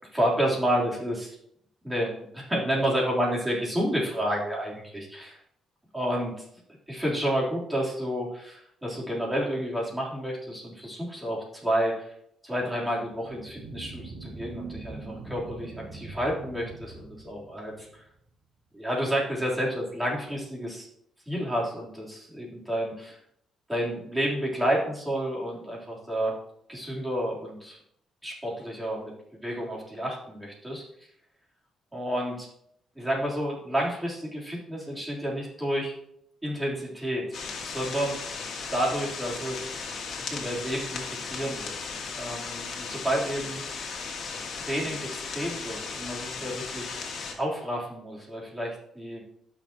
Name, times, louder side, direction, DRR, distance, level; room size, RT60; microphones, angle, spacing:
voice 1, 0.1-1.4 1.8-5.4 5.9-6.5 6.9-12.1 12.4-18.0 18.7-20.9 21.3-23.2 23.7-26.3 26.7-27.8 28.2-30.8 31.9-32.5 33.0-35.9 36.4-37.4 37.6-38.2 38.7-39.9 40.2-41.8 42.2-44.0 44.7-47.0 47.4-49.2, equal, 10° right, -4 dB, 3.6 m, -30 dB
sound 1, 13.1-18.0, right 3 dB, 70° right, 2.4 m, -42 dB
sound 2, 37.3-47.3, left 5 dB, 60° left, 2.1 m, -36 dB
14.5 x 6.4 x 3.0 m, 0.72 s
cardioid pair, 90°, 0 cm